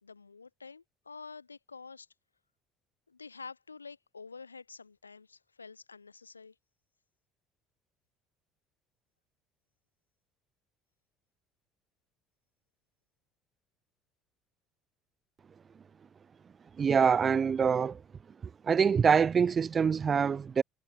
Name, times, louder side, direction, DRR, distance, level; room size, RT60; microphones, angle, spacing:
voice 1, 0.0-2.1 3.1-6.5, left 4 dB, 85° left, 5.3 m, -48 dB
voice 2, 16.8-18.0 18.4-20.6, right 6 dB, 35° right, 0.5 m, -25 dB
figure-of-eight pair, 60°, 0 cm